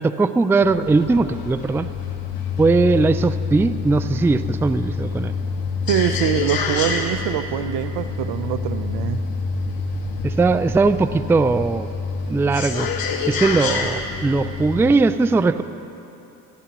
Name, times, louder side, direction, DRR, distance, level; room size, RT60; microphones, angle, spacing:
voice 1, 0.0-1.9 2.6-5.3 10.2-11.9 12.3-12.9 13.3-15.6, right 3 dB, 5° right, 13 dB, 0.3 m, -19 dB
sound 1, 0.6-14.9, left 4 dB, 65° left, 1.6 m, -27 dB
voice 2, 5.9-9.2, right 11 dB, 75° right, 12 dB, 0.7 m, -24 dB
22.0 x 13.5 x 3.0 m, 2.9 s
supercardioid pair, 65°, 39 cm